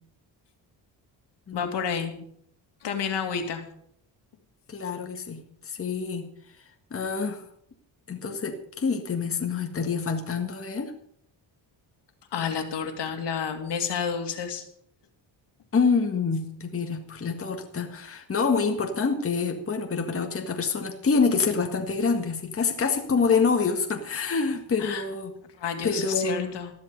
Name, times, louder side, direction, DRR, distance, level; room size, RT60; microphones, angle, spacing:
voice 1, 1.5-2.1 2.8-3.6 12.3-14.6 24.8-25.0 25.6-26.7, left 7 dB, 70° left, 6 dB, 2.5 m, -30 dB
voice 2, 4.7-6.3 6.9-7.4 8.1-10.9 15.7-25.3 25.8-26.5, left 5 dB, 30° left, 3 dB, 1.8 m, -26 dB
14.0 x 11.5 x 5.3 m, 0.65 s
cardioid pair, 110°, 44 cm